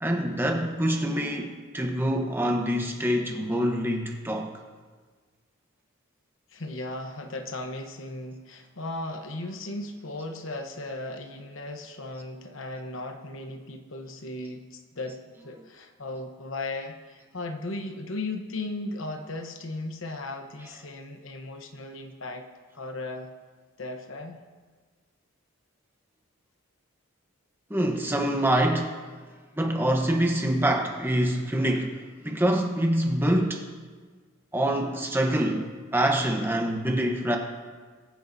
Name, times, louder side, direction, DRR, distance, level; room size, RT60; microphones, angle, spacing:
voice 1, 0.0-4.5 27.7-28.9 29.6-33.7 34.5-37.4, right 1 dB, 10° right, 2 dB, 0.9 m, -25 dB
voice 2, 6.5-22.5 22.7-23.3 23.8-24.4, left 2 dB, 65° left, 5 dB, 1.0 m, -36 dB
21.5 x 9.4 x 2.7 m, 1.5 s
head